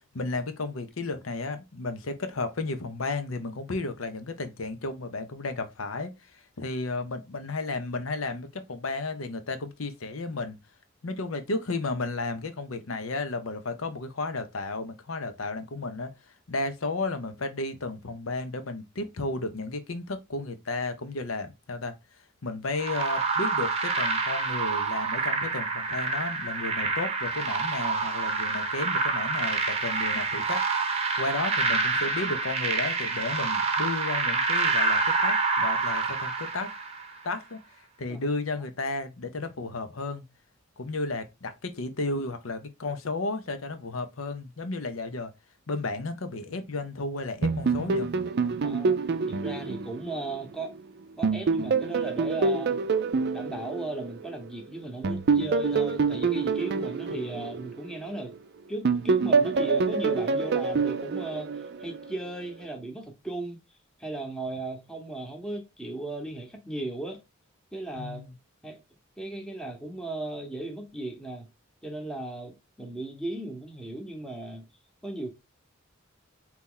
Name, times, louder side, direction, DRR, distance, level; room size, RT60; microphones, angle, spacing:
voice 1, 0.1-10.6 11.0-16.1 16.5-30.6 30.9-36.7 37.2-40.2 40.8-45.3 45.7-48.1 57.1-57.4 67.9-68.3, left 3 dB, 80° left, 0.8 m, -33 dB
sound 1, 22.8-37.2, right 4 dB, 30° right, 0.8 m, -27 dB
sound 2, 47.4-50.8 51.2-54.5 55.0-58.4 58.8-62.1, right 4 dB, 55° right, 0.4 m, -26 dB
voice 2, 48.6-50.7 51.2-52.9 53.3-58.4 58.7-63.6 64.0-67.2 67.7-68.2 68.6-68.8 69.2-71.5 71.8-74.7 75.0-75.3, right 2 dB, 5° left, 0.9 m, -36 dB
4.1 x 3.0 x 3.8 m
head